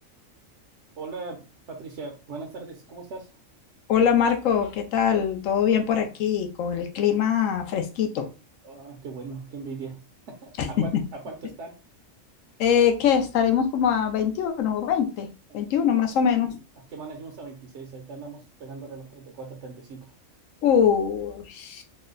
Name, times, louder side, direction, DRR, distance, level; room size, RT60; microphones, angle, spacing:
voice 1, 1.0-3.3 8.6-10.0 10.3-11.7 15.5-15.6 16.8-20.1, right 4 dB, 65° right, 0 dB, 1.0 m, -39 dB
voice 2, 3.9-8.3 10.6-10.9 12.6-15.3 15.5-16.6 20.6-21.8, left 8 dB, 80° left, 5 dB, 1.0 m, -23 dB
3.2 x 2.1 x 3.7 m, 0.31 s
omnidirectional pair, 1.4 m